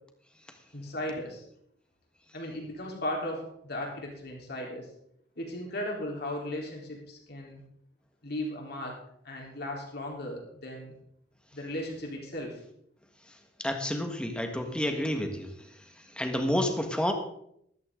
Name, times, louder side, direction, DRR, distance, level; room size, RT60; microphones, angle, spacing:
voice 1, 0.7-1.4 2.3-4.9 5.4-7.6 8.2-9.0 9.2-11.0 11.5-12.6, left 1 dB, 60° left, -1 dB, 3.8 m, -36 dB
voice 2, 13.6-15.5 16.1-17.1, left 1 dB, 5° left, 5 dB, 1.5 m, -29 dB
13.5 x 12.5 x 3.8 m, 0.71 s
head